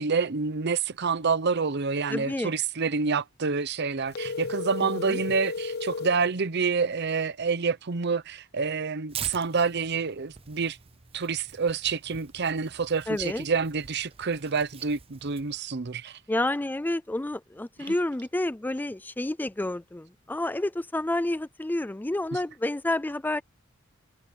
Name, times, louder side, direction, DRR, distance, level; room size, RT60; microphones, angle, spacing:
voice 1, 0.0-10.8 11.1-16.2 17.8-17.9 22.3-22.4, right 5 dB, 55° right, 0.8 m, -28 dB
voice 2, 2.1-2.5 4.8-5.2 13.1-13.4 16.3-23.4, left 1 dB, 10° left, 0.4 m, -29 dB
sound 1, 4.1-6.2, left 4 dB, 50° left, 0.9 m, -33 dB
Tearing, 9.1-15.6, right 7 dB, 30° right, 0.7 m, -45 dB
head